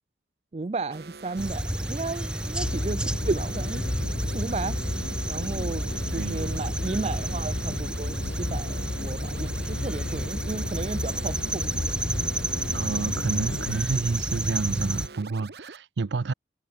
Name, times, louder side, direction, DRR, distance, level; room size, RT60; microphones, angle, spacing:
voice 1, 0.5-3.9 4.3-4.8 5.3-5.9 6.1-11.8 12.1-12.2, right 3 dB, 35° right, 0.4 m, -33 dB
sound 1, 0.9-15.8, right 4 dB, 65° right, 1.2 m, -45 dB
sound 2, 1.4-15.1, right 1 dB, 5° right, 1.1 m, -31 dB
sound 3, 2.6-13.8, left 2 dB, 65° left, 1.0 m, -33 dB
voice 2, 12.7-16.3, right 4 dB, 85° right, 0.6 m, -29 dB
head